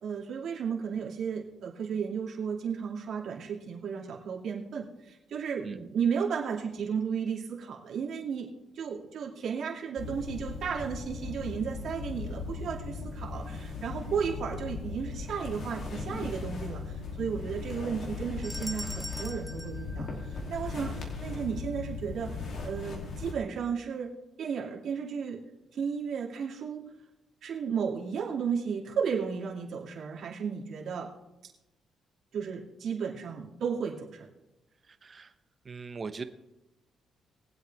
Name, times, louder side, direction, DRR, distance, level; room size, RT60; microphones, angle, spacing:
voice 1, 0.0-8.5 8.8-20.1 20.5-22.3 22.6-24.1 24.4-25.4 25.7-26.8 27.4-31.1 32.3-34.3, right 6 dB, 65° right, -1 dB, 2.5 m, -34 dB
sound 1, 10.0-23.3, left 4 dB, 60° left, 2.8 m, -38 dB
sound 2, 18.4-20.8, equal, 5° left, 0.7 m, -43 dB
voice 2, 34.9-35.3 35.6-36.2, right 4 dB, 40° right, 10 dB, 0.9 m, -40 dB
21.5 x 8.0 x 3.5 m, 0.96 s
cardioid pair, 90°, 0 cm